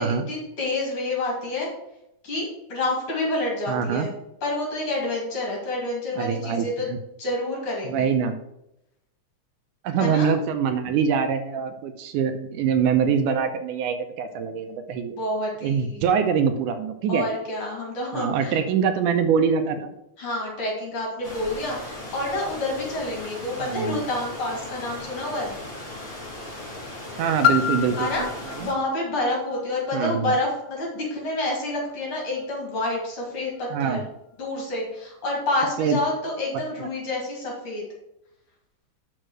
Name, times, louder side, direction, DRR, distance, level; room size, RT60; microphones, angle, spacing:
voice 1, 0.0-1.7 2.2-4.1 4.4-6.9 7.2-8.1 10.0-10.3 15.2-16.0 17.1-18.6 20.2-25.6 27.9-28.2 28.6-34.0 34.4-37.8, left 2 dB, 45° left, -2 dB, 3.1 m, -28 dB
voice 2, 3.7-4.1 6.2-7.0 7.8-8.4 9.8-15.2 15.6-17.3 18.1-19.8 23.6-24.0 27.2-28.7 29.9-30.3 33.7-34.0 35.8-36.0, right 7 dB, 80° right, 8 dB, 2.2 m, -24 dB
sound 1, 21.2-28.7, left 1 dB, 25° left, 1.6 m, -38 dB
Piano, 27.4-32.9 33.6-33.7, left 9 dB, 90° left, 2.2 m, -30 dB
6.4 x 5.5 x 6.2 m, 0.83 s
omnidirectional pair, 3.7 m